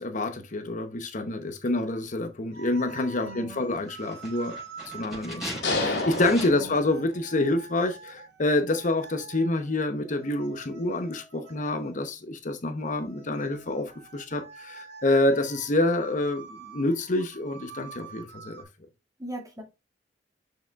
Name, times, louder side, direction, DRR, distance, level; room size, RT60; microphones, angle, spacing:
voice 1, 0.0-4.6 4.9-18.6, left 2 dB, 45° left, 0.8 m, -27 dB
sound 1, 2.5-12.1 12.8-18.6, right 5 dB, 60° right, 2.5 m, -47 dB
voice 2, 3.2-3.6 6.4-6.8 19.2-19.6, right 1 dB, 20° right, 2.0 m, -39 dB
sound 2, 4.0-6.8 7.1-7.2, equal, ahead, 4.5 m, -39 dB
sound 3, 5.6-7.5, left 2 dB, 85° left, 2.4 m, -30 dB
6.7 x 6.6 x 2.3 m
head